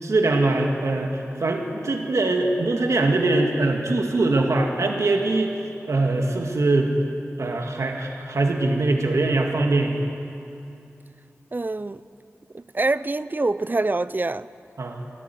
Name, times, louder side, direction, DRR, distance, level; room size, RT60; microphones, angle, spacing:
voice 1, 0.0-6.9 7.4-10.1 14.8-15.0, right 2 dB, 75° right, 2 dB, 2.0 m, -22 dB
voice 2, 11.5-12.0 12.5-14.5, right 2 dB, 40° right, 16 dB, 0.6 m, -25 dB
24.0 x 14.0 x 9.4 m, 2.6 s
wide cardioid pair, 50°, 5 cm